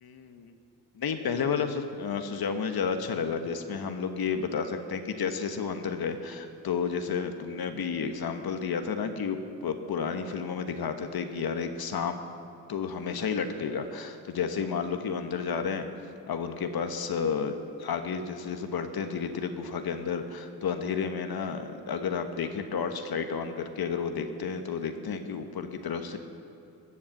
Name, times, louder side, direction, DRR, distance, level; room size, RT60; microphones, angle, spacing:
voice 1, 0.0-0.5 0.9-12.2 12.7-15.9 16.3-26.2, left 6 dB, 60° left, 7 dB, 1.3 m, -31 dB
14.0 x 8.6 x 7.3 m, 2.7 s
supercardioid pair, 55°, 42 cm